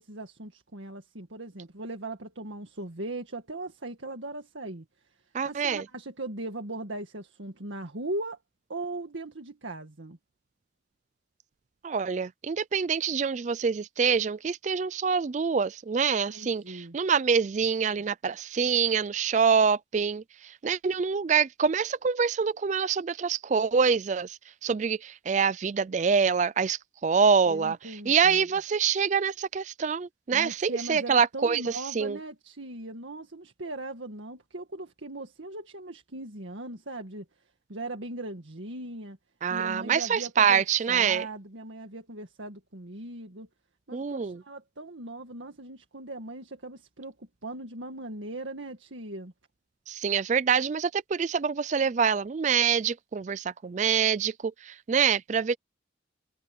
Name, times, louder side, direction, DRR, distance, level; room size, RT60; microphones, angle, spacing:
voice 1, 0.0-4.9 5.4-8.4 8.7-10.2 16.3-17.0 27.5-28.4 30.3-37.3 37.7-39.2 39.5-43.5 43.9-49.3, right 2 dB, 80° right, 1.9 m, -39 dB
voice 2, 5.3-5.8 11.8-27.8 28.1-32.2 39.4-41.3 43.9-44.4 49.9-55.6, right 6 dB, 40° right, 0.4 m, -26 dB
head